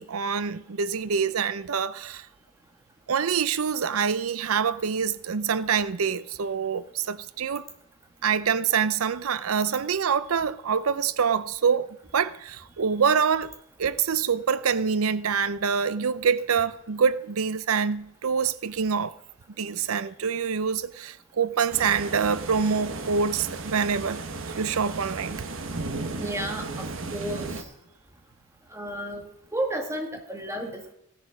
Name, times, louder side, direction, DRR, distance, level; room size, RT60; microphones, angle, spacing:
voice 1, 0.0-2.3 3.1-7.6 8.2-13.5 13.8-19.1 19.6-24.2 24.6-25.4, right 6 dB, 90° right, 0.6 m, -26 dB
sound 1, 21.7-27.6, right 3 dB, 65° right, 1.3 m, -35 dB
voice 2, 26.2-26.9 27.1-27.6 28.7-30.9, right 1 dB, 15° right, 1.9 m, -32 dB
16.5 x 10.5 x 5.0 m
head